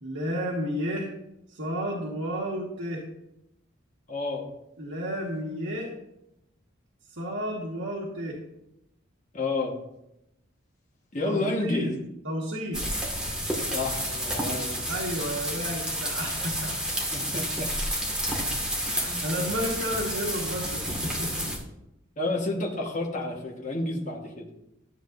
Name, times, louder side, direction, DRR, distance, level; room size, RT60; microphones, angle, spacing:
voice 1, 0.0-1.1 1.5-3.0 4.8-5.9 7.1-8.4 11.2-12.0 12.2-12.8 14.9-16.8 18.9-21.5, equal, 75° right, -4 dB, 1.7 m, -32 dB
voice 2, 4.1-4.5 9.3-9.7 11.1-11.9 13.7-14.8 17.1-17.7 18.9-19.2 22.2-24.5, left 2 dB, 35° left, -1 dB, 1.4 m, -30 dB
sound 1, 12.7-21.6, equal, 5° right, 1.8 m, -30 dB
13.0 x 7.8 x 2.6 m, 0.85 s
head